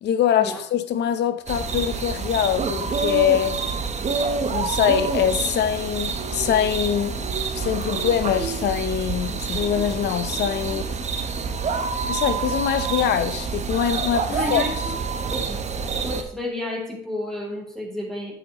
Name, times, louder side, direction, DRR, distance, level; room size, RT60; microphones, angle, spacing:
voice 1, 0.0-3.6 4.5-7.3 7.5-10.8 12.1-14.6, left 10 dB, 70° left, 0.9 m, -23 dB
sound 1, 1.5-16.2, right 5 dB, 35° right, 1.0 m, -27 dB
voice 2, 10.6-11.1 14.3-15.0 15.3-15.6 16.0-18.3, left 1 dB, ahead, 3.2 m, -31 dB
9.0 x 7.8 x 3.1 m
cardioid pair, 90°, 19 cm